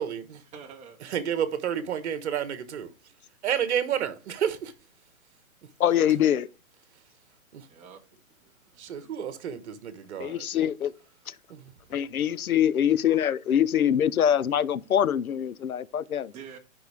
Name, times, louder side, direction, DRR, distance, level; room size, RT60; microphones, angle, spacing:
voice 1, 0.0-0.4 1.0-2.9 3.4-4.7 7.5-7.7 8.8-10.5 11.5-11.7, right 9 dB, 50° right, 1.6 m, -30 dB
voice 2, 0.5-1.0 7.7-8.0 8.4-8.8 12.1-12.2 15.7-15.9 16.3-16.6, right 7 dB, 15° right, 1.6 m, -47 dB
voice 3, 5.8-6.5 10.2-10.9 11.3-11.4 11.9-16.3, left 9 dB, 90° left, 0.8 m, -24 dB
12.0 x 5.6 x 3.5 m
hypercardioid pair, 145°, 42 cm